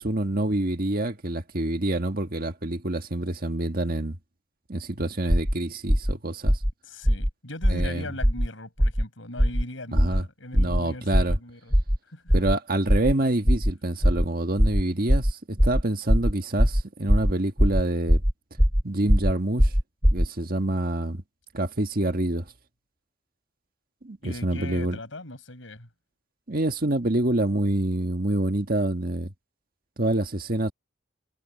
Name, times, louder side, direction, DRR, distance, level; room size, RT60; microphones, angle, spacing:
voice 1, 0.0-4.2 4.7-6.6 7.7-8.0 9.9-10.2 10.5-11.4 12.3-18.2 18.8-19.7 20.1-21.2 21.5-22.4 24.0-25.0 26.5-29.3 30.0-30.7, right 1 dB, 50° right, 1.6 m, -27 dB
sound 1, 5.3-5.5 5.9-6.1 6.4-6.7 7.0-7.3 7.6-7.9 8.2-8.5 8.8-9.0 9.4-9.6 9.9-10.2 10.5-10.8 11.1-11.4 11.7-12.0 12.3-12.5 12.9-13.1 13.4-13.7 14.0-14.2 14.6-14.8 15.1-15.3 15.6-15.8 16.1-16.3 16.6-16.8 17.1-17.3 17.6-17.8 18.1-18.3 18.6-18.8 19.1-19.3 19.6-20.3, equal, 10° right, 2.6 m, -20 dB
voice 2, 6.8-11.7 12.1-12.4 24.2-25.9, left 1 dB, 90° left, 5.6 m, -39 dB
head